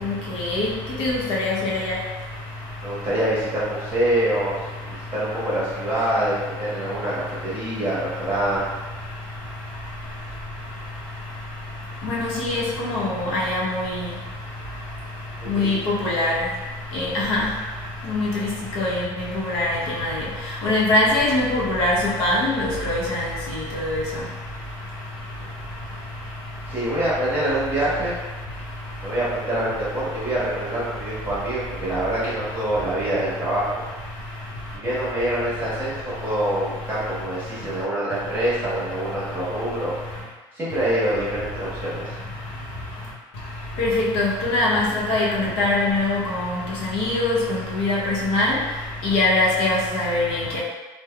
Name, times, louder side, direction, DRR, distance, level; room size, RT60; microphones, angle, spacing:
voice 1, 0.0-0.7 1.0-1.9 12.0-13.8 15.5-15.8 16.0-16.3 16.9-17.5 18.1-18.3 18.8-19.0 19.5-20.1 20.6-21.9 22.2-23.2 23.7-24.0 43.8-46.5 46.9-47.4 47.8-48.6 49.0-50.6, left 2 dB, 75° left, -5 dB, 0.8 m, -22 dB
voice 2, 2.8-7.1 7.4-8.7 15.4-15.7 25.4-25.5 26.7-28.2 29.0-33.7 34.7-39.9 40.5-42.1, right 1 dB, 20° right, -9 dB, 1.1 m, -25 dB
3.4 x 2.1 x 2.3 m, 1.2 s
cardioid pair, 155°, 10 cm